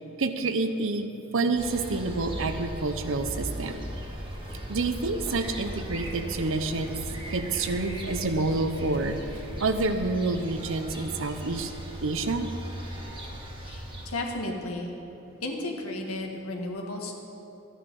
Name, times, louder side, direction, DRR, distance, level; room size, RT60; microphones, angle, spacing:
voice 1, 0.2-1.1 1.3-3.9 4.7-7.0 7.3-11.7 12.0-12.5, right 3 dB, 65° right, 8 dB, 0.8 m, -28 dB
sound 1, 1.6-14.1, equal, 25° right, 1.6 m, -38 dB
Run, 4.1-10.1, equal, 15° left, 2.0 m, -43 dB
voice 2, 13.6-15.0 15.4-17.1, left 2 dB, 80° left, 1 dB, 1.7 m, -33 dB
14.0 x 10.0 x 5.4 m, 2.9 s
head